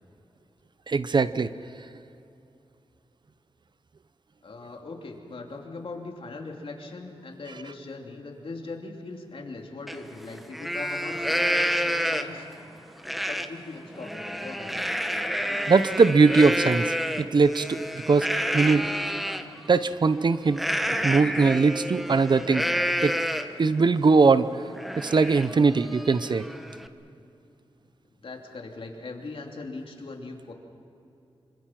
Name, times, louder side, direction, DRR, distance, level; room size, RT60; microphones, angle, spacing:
voice 1, 0.9-1.5 15.7-18.9 19.7-20.6 21.0-22.7 23.0-23.2 23.6-24.5 25.0-26.4, right 4 dB, 45° right, 14 dB, 0.7 m, -21 dB
voice 2, 4.4-12.5 13.1-14.9 27.1-27.2 28.1-30.5, left 3 dB, 60° left, 2 dB, 2.9 m, -40 dB
Livestock farm animals working animals, 9.9-10.0 10.4-12.5 13.0-13.5 13.9-19.4 20.5-23.6 24.1-24.2 24.5-26.9, equal, ahead, 1.0 m, -29 dB
26.5 x 25.5 x 6.0 m, 2.7 s
wide cardioid pair, 110°, 10 cm